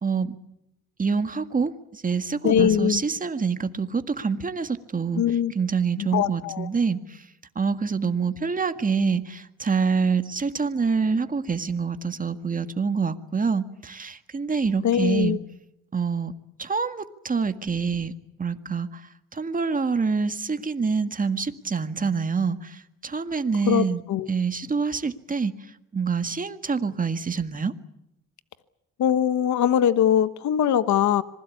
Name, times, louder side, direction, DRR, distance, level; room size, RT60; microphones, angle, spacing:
voice 1, 0.0-0.4 1.0-5.2 5.5-7.2 7.6-15.4 15.9-16.3 16.6-18.1 18.4-19.0 19.3-24.0 24.3-25.6 25.9-27.7, right 5 dB, 25° right, 9 dB, 1.9 m, -26 dB
voice 2, 2.4-3.0 5.2-5.5 6.0-6.7 14.8-15.4 23.7-24.3 29.0-31.2, left 10 dB, 70° left, 13 dB, 1.2 m, -22 dB
26.0 x 20.5 x 8.5 m, 0.86 s
cardioid pair, 90°, 30 cm